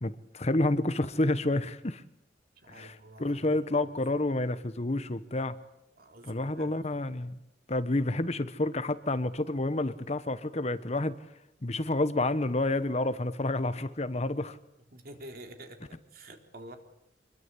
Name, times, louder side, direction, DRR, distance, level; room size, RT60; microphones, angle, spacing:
voice 1, 0.0-2.0 2.7-5.5 6.2-7.4 7.7-11.2 11.6-14.6, left 2 dB, 35° left, 13 dB, 1.1 m, -29 dB
voice 2, 2.6-3.5 6.0-6.8 14.9-16.8, right 1 dB, 55° right, 5 dB, 3.8 m, -48 dB
26.0 x 22.0 x 8.4 m, 0.80 s
head